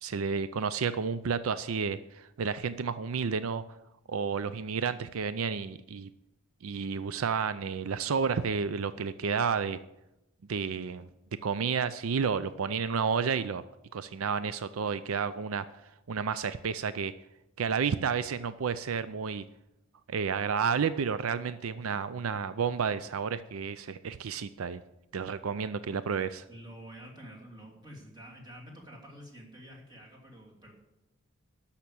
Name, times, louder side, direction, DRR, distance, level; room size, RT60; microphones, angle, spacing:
voice 1, 0.0-3.6 4.1-6.1 6.6-9.8 10.5-11.1 11.4-13.6 13.9-15.6 16.1-17.1 17.6-19.4 20.1-24.8 25.1-26.4, right 6 dB, 80° right, 14 dB, 0.5 m, -31 dB
voice 2, 26.5-30.7, equal, 20° right, -2 dB, 2.8 m, -48 dB
12.5 x 5.9 x 8.5 m, 0.90 s
head